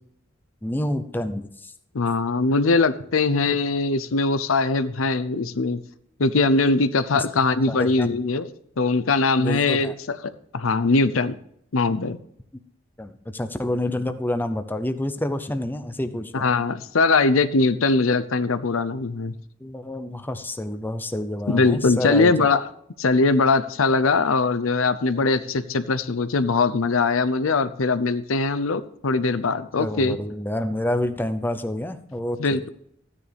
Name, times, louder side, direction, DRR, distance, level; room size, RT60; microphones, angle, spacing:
voice 1, 0.6-1.7 7.1-7.2 7.7-8.2 9.4-9.9 13.0-16.5 19.6-22.5 29.8-32.7, left 1 dB, 10° left, 9 dB, 0.6 m, -28 dB
voice 2, 1.9-5.8 6.2-8.5 8.8-10.2 10.5-11.3 11.7-12.2 16.3-19.3 21.5-22.6 23.0-30.2 32.4-32.7, left 3 dB, 85° left, 13 dB, 0.7 m, -21 dB
14.0 x 9.8 x 3.4 m, 0.70 s
head